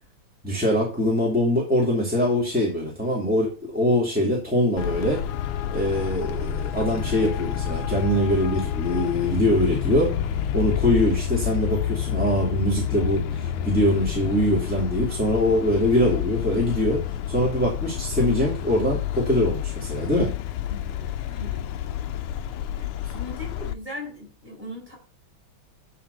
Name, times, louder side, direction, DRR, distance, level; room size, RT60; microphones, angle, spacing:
voice 1, 0.4-5.2 5.7-10.2 10.5-17.0 17.3-20.3 23.0-23.1, equal, 5° right, -3 dB, 2.2 m, -23 dB
Traffic noise roadway noise, 4.8-23.7, left 10 dB, 80° left, 1.5 m, -29 dB
voice 2, 20.7-21.6 22.8-25.0, left 1 dB, 20° right, -2 dB, 6.5 m, -39 dB
11.0 x 4.3 x 6.7 m, 0.37 s
omnidirectional pair, 2.4 m